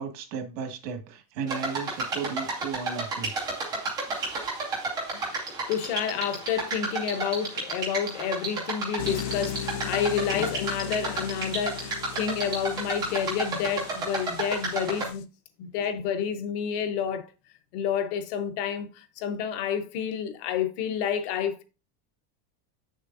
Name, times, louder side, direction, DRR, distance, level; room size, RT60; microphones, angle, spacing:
voice 1, 0.0-3.3 3.7-3.8, right 6 dB, 80° right, 1.8 m, -35 dB
sound 1, 1.5-15.1, right 3 dB, 10° right, 0.3 m, -32 dB
voice 2, 5.1-15.3 15.6-17.3 17.7-21.6, left 8 dB, 45° left, 0.9 m, -29 dB
sound 2, 9.0-15.2, left 9 dB, 80° left, 0.9 m, -38 dB
7.5 x 6.5 x 2.5 m
supercardioid pair, 180°, 49 cm